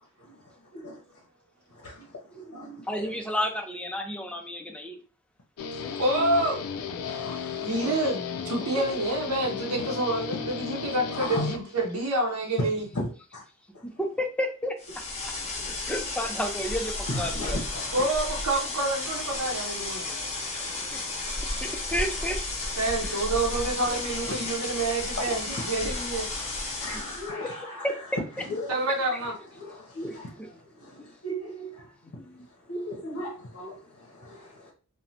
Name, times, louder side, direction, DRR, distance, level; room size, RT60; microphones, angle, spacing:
voice 1, 1.7-2.8 5.7-6.5 7.0-7.9 11.1-11.5 12.6-13.4 17.1-18.0 24.3-24.7 25.2-27.9 28.4-28.7 29.6-32.2 32.7-34.7, left 1 dB, 65° left, 0.7 m, -37 dB
voice 2, 2.9-5.0 8.9-9.0 13.8-14.7 15.7-17.7 20.9-21.0 21.6-22.4 23.0-23.2 23.9-24.1 27.4-27.6 27.8-27.9 28.4-28.5 28.9-29.0 30.0-30.5 31.0-31.1 32.2-32.5, equal, 5° left, 0.4 m, -32 dB
Guitar, 5.6-12.1, left 5 dB, 90° left, 0.4 m, -35 dB
voice 3, 6.0-6.6 7.6-12.8 17.9-20.1 22.8-26.3 28.7-29.3, right 2 dB, 75° right, 0.7 m, -28 dB
sound 1, 14.8-27.3, left 2 dB, 30° left, 0.7 m, -33 dB
3.0 x 2.1 x 2.7 m
head